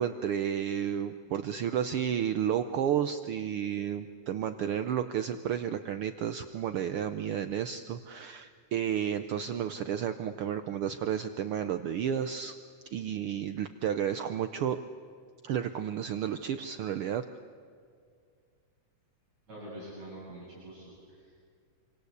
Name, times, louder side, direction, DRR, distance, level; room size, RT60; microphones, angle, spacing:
voice 1, 0.0-12.6 12.9-14.8 15.4-17.2, right 9 dB, 80° right, 10 dB, 1.2 m, -32 dB
voice 2, 19.5-21.3, right 1 dB, 55° right, -7 dB, 8.9 m, -45 dB
27.5 x 25.5 x 8.2 m, 2.2 s
omnidirectional pair, 3.5 m